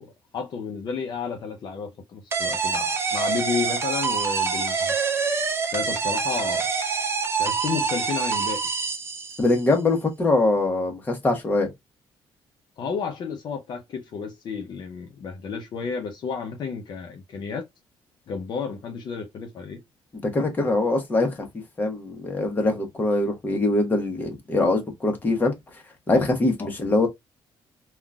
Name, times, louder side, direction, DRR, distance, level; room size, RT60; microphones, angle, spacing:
voice 1, 0.0-4.9 5.7-6.7 7.4-8.6 12.8-17.6 18.3-19.8 26.6-26.7, left 5 dB, 55° left, 0.7 m, -32 dB
sound 1, 2.3-9.7, right 5 dB, 25° right, 0.6 m, -26 dB
voice 2, 9.4-11.7 20.3-21.4 21.8-25.5 26.1-27.1, left 2 dB, 20° left, 1.0 m, -23 dB
3.7 x 2.4 x 2.2 m
cardioid pair, 140°, 9 cm